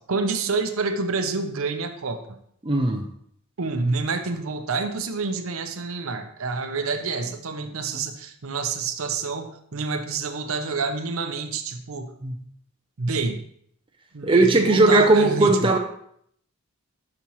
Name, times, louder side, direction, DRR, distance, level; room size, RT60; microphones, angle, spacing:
voice 1, 0.0-2.4 3.6-12.1 13.0-13.4 14.1-15.7, right 4 dB, 75° right, 7 dB, 0.7 m, -28 dB
voice 2, 2.6-3.0 12.2-12.4 14.2-15.8, right 2 dB, 25° right, 4 dB, 0.5 m, -18 dB
7.0 x 6.0 x 3.1 m, 0.67 s
head